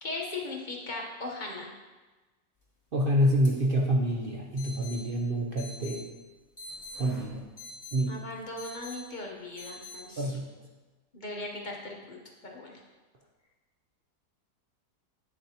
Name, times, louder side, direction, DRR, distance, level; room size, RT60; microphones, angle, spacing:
voice 1, 0.0-1.7 8.1-10.4 11.1-12.2 12.5-12.8, left 2 dB, 35° left, -1 dB, 0.8 m, -38 dB
voice 2, 2.9-6.0 7.0-7.4 7.9-8.2 10.2-10.4, equal, 65° right, -1 dB, 0.5 m, -27 dB
sound 1, 3.4-3.5 3.8-3.9 4.6-5.0 5.6-6.0 6.6-8.0 8.6-9.0 9.6-10.0, left 2 dB, 10° left, 1.6 m, -44 dB
8.9 x 6.6 x 2.8 m, 1.2 s
omnidirectional pair, 1.8 m